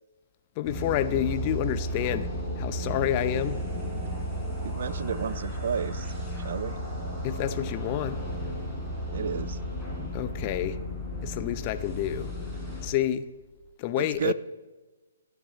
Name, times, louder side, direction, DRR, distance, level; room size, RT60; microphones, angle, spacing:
voice 1, 0.6-2.3 2.6-3.6 7.2-8.2 10.1-10.8 11.2-12.3 12.8-13.3 13.8-14.3, left 12 dB, 30° left, 0.6 m, -29 dB
sound 1, 0.6-12.9, equal, 5° left, 4.0 m, -33 dB
voice 2, 4.6-6.1 6.4-6.8 9.1-9.6 14.0-14.3, right 7 dB, 50° right, 0.4 m, -32 dB
23.0 x 9.5 x 3.2 m
figure-of-eight pair, 130°, 0 cm